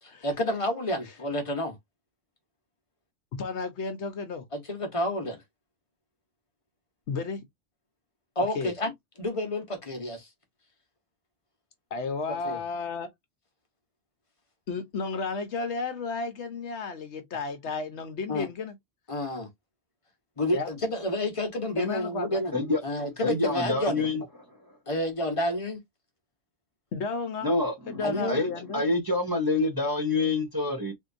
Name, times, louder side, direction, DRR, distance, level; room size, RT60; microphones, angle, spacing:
voice 1, 0.0-1.8 4.5-5.4 8.4-8.9 9.2-10.3 12.3-12.6 18.3-18.5 19.1-19.5 20.4-22.5 22.8-24.0 24.9-25.8 28.0-28.4, left 1 dB, 30° left, 1.0 m, -30 dB
voice 2, 3.4-4.4 7.1-7.4 8.5-8.7 11.9-13.1 14.7-18.7 20.5-20.7 21.8-22.4 26.9-27.5 27.9-28.8, left 4 dB, 70° left, 1.0 m, -33 dB
voice 3, 23.2-24.2 27.4-30.9, left 2 dB, 20° right, 0.8 m, -27 dB
3.6 x 2.7 x 2.6 m
omnidirectional pair, 1.3 m